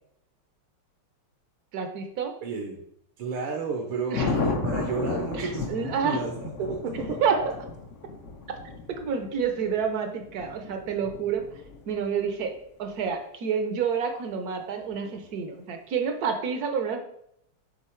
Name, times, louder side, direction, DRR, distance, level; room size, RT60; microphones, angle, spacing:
voice 1, 1.7-2.3 4.1-4.3 5.3-6.2 7.2-7.4 8.5-8.6 8.9-11.4 11.9-12.5 12.8-17.0, right 6 dB, 65° right, 5 dB, 0.9 m, -28 dB
voice 2, 2.4-2.8 3.2-7.2, right 4 dB, 80° right, 2 dB, 1.7 m, -32 dB
Thunder, 4.1-12.2 14.9-15.3, left 4 dB, 80° left, 0.6 m, -34 dB
7.3 x 3.7 x 4.4 m, 0.73 s
omnidirectional pair, 2.4 m